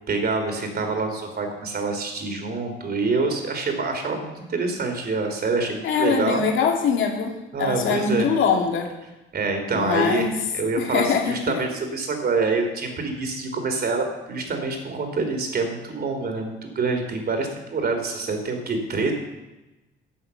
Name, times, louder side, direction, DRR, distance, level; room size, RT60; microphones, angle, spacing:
voice 1, 0.1-6.4 7.5-8.3 9.3-10.3 10.5-19.1, right 3 dB, 50° right, 5 dB, 3.1 m, -26 dB
voice 2, 5.8-8.9 9.7-10.3 10.8-11.6, left 6 dB, 75° left, 2 dB, 2.3 m, -23 dB
12.0 x 8.0 x 7.0 m, 1.0 s
cardioid pair, 90°, 20 cm